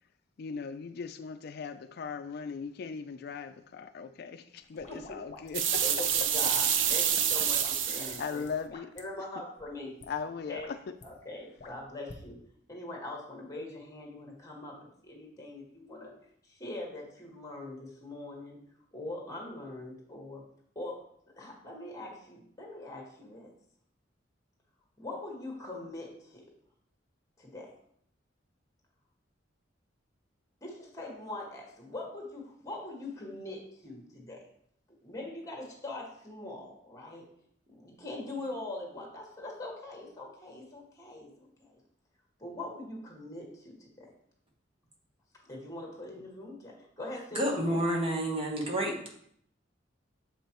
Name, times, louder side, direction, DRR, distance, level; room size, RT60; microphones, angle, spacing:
voice 1, 0.4-5.8 7.9-8.9 10.1-10.8, left 5 dB, 55° left, 0.4 m, -38 dB
sound 1, 4.6-6.3 6.7-7.7 8.0-9.0 9.6-9.7 10.0-10.1 10.4-11.1 11.6-12.2, left 3 dB, 40° left, 0.9 m, -50 dB
sound 2, 5.5-8.3, right 8 dB, 80° right, 0.5 m, -27 dB
voice 2, 5.8-8.5 8.9-9.9 10.5-10.7 11.0-12.4 12.7-14.8 15.0-16.1 16.4-18.6 18.9-20.4 20.7-21.0 21.3-23.5 25.0-26.4 27.4-27.7 30.6-34.4 35.0-37.2 37.7-41.8 42.4-44.1 45.4-47.8, left 2 dB, 15° left, 1.5 m, -42 dB
voice 3, 47.3-49.1, right 1 dB, 30° right, 1.2 m, -29 dB
7.1 x 5.2 x 3.0 m
head